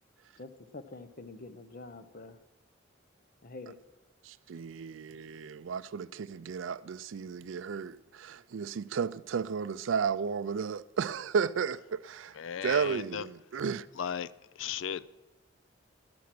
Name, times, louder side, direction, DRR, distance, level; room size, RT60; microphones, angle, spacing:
voice 1, 0.4-2.4 3.4-3.8, left 3 dB, 45° left, 0.9 m, -46 dB
voice 2, 4.3-12.3 12.6-13.9, right 6 dB, 70° right, 0.4 m, -33 dB
voice 3, 12.4-13.3 14.0-14.3 14.6-15.1, left 8 dB, 70° left, 0.4 m, -35 dB
13.5 x 11.5 x 6.0 m
head